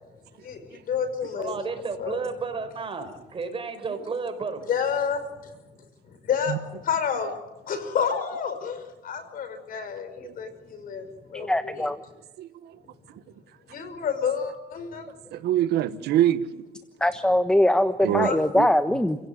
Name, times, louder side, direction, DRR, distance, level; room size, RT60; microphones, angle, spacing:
voice 1, 0.4-1.5 2.0-2.2 4.7-5.5 6.2-6.6 6.8-7.3 7.7-11.9 13.7-15.1 18.2-18.4, left 7 dB, 55° left, 5.6 m, -29 dB
voice 2, 1.3-4.6, right 4 dB, 30° right, 5.0 m, -32 dB
voice 3, 11.3-12.0 17.0-19.2, left 1 dB, 5° left, 1.2 m, -22 dB
voice 4, 12.4-12.8 13.1-13.2 13.8-13.9 15.3-16.6 18.0-18.7, right 12 dB, 75° right, 1.4 m, -26 dB
30.0 x 17.0 x 9.4 m
cardioid pair, 110°, 17 cm